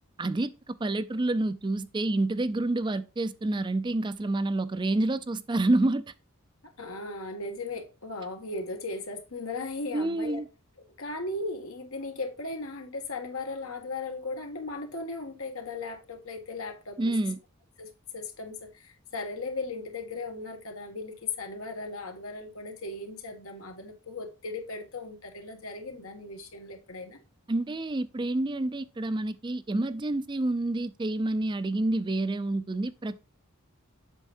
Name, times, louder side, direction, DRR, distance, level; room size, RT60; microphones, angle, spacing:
voice 1, 0.2-6.1 9.9-10.5 17.0-17.4 27.5-33.2, right 2 dB, 20° right, 0.4 m, -28 dB
voice 2, 6.8-10.4 11.0-17.1 17.8-27.2, left 3 dB, 80° left, 1.8 m, -37 dB
8.2 x 6.5 x 2.6 m
head